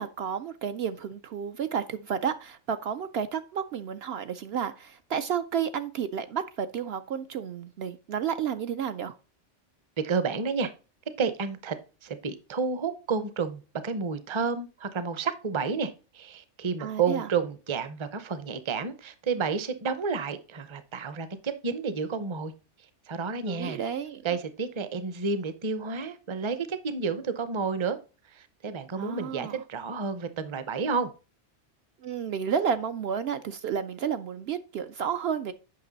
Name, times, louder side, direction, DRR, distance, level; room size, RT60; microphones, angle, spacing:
voice 1, 0.0-9.1 16.8-17.3 23.5-24.2 29.0-29.6 32.0-35.5, right 7 dB, 65° right, 0.8 m, -31 dB
voice 2, 10.0-10.7 11.2-11.8 12.0-22.5 23.1-23.8 24.2-28.0 28.3-31.1, right 5 dB, 30° right, 0.7 m, -30 dB
8.5 x 5.9 x 3.9 m
omnidirectional pair, 1.2 m